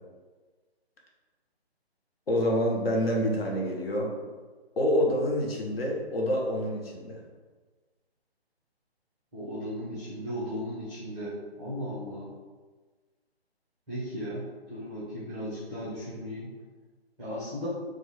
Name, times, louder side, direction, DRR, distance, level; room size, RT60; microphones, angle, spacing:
voice 1, 2.3-4.1 4.8-7.2, equal, 65° left, -1 dB, 0.9 m, -27 dB
voice 2, 9.3-12.3 13.9-16.5 17.2-17.7, equal, ahead, -12 dB, 0.5 m, -36 dB
3.6 x 2.4 x 3.1 m, 1.4 s
figure-of-eight pair, 145°, 32 cm